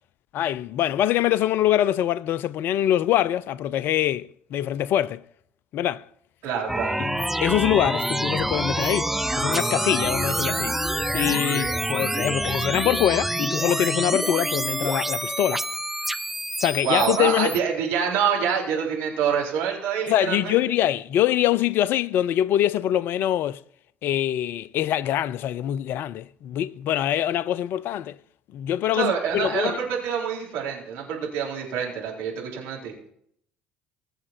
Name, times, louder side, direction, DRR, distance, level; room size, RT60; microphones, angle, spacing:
voice 1, 0.3-5.2 5.7-6.0 7.0-10.8 11.1-15.6 16.6-17.6 20.1-23.6 24.0-28.2 28.5-29.8, left 12 dB, 60° left, 0.5 m, -24 dB
voice 2, 6.4-7.0 16.8-20.6 28.9-33.1, right 7 dB, 65° right, 4.0 m, -26 dB
sound 1, 6.7-17.6, right 1 dB, 5° right, 0.6 m, -27 dB
21.5 x 7.4 x 4.4 m
hypercardioid pair, 55°, 4 cm